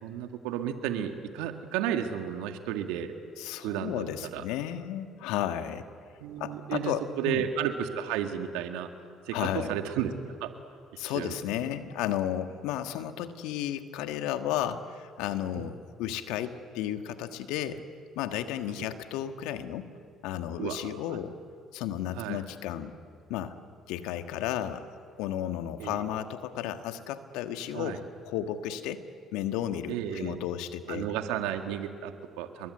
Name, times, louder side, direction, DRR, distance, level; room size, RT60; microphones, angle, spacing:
voice 1, 0.0-3.1 3.6-4.4 6.2-8.9 9.3-10.1 10.4-10.5 11.0-11.4 15.5-15.7 18.8-18.9 20.6-21.2 22.2-22.4 25.8-26.1 27.7-28.0 29.9-30.4 30.9-32.7, right 10 dB, 75° right, 6 dB, 2.0 m, -33 dB
voice 2, 3.4-5.9 6.4-7.5 9.3-9.7 11.0-17.8 18.1-19.9 20.2-21.4 21.7-22.9 23.3-23.5 23.9-24.9 25.2-29.0 29.3-31.1, left 11 dB, 75° left, 8 dB, 1.5 m, -33 dB
29.5 x 22.5 x 8.0 m, 2.3 s
hypercardioid pair, 55°, 0 cm